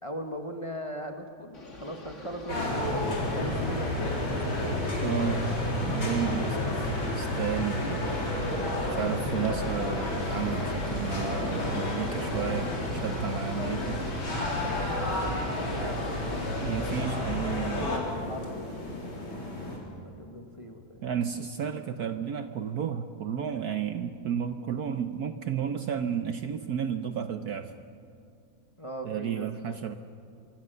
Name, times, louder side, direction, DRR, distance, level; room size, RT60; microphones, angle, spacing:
voice 1, 0.0-4.6 8.7-9.1 10.8-10.9 13.3-13.9 14.4-17.0 17.4-18.8 20.0-21.0 28.8-29.8, equal, 20° left, 4 dB, 1.3 m, -40 dB
sound 1, 1.5-17.0, left 2 dB, 35° left, 2.7 m, -44 dB
sound 2, 2.5-19.8, left 1 dB, 90° left, 4.8 m, -31 dB
voice 2, 5.0-5.4 5.8-8.2 9.0-14.0 16.6-17.9 21.0-27.7 29.0-29.9, right 8 dB, 60° right, 9 dB, 1.2 m, -32 dB
25.0 x 24.5 x 6.8 m, 2.4 s
omnidirectional pair, 2.1 m